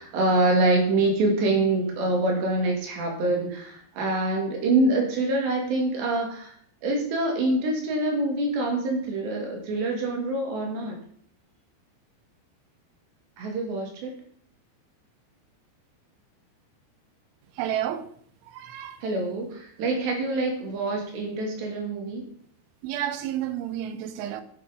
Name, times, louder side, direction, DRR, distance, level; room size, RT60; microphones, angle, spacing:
voice 1, 0.0-6.6 6.8-11.0 13.4-14.1 19.0-22.2, right 2 dB, 70° right, 4.6 m, -25 dB
voice 2, 17.6-18.1 18.4-19.0 22.8-24.4, right 11 dB, 85° right, 3.4 m, -31 dB
12.0 x 7.4 x 5.2 m
omnidirectional pair, 5.3 m